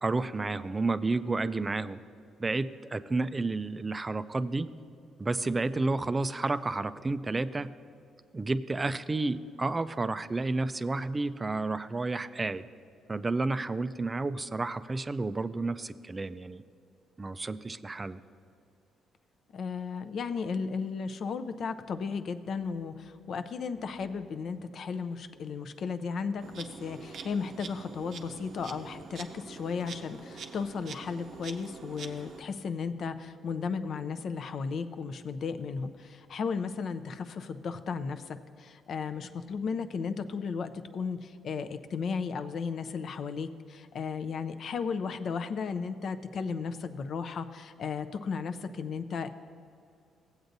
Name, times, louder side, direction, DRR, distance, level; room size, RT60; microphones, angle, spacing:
voice 1, 0.0-2.0 2.4-4.7 5.2-7.7 8.3-12.6 13.1-16.6 17.2-18.2, right 3 dB, 25° right, 13 dB, 0.3 m, -31 dB
voice 2, 19.5-49.3, left 5 dB, 60° left, 10 dB, 0.4 m, -35 dB
Insect, 26.4-32.4, right 5 dB, 65° right, 0.6 m, -45 dB
16.0 x 7.9 x 2.6 m, 2.5 s
cardioid pair, 90°, 0 cm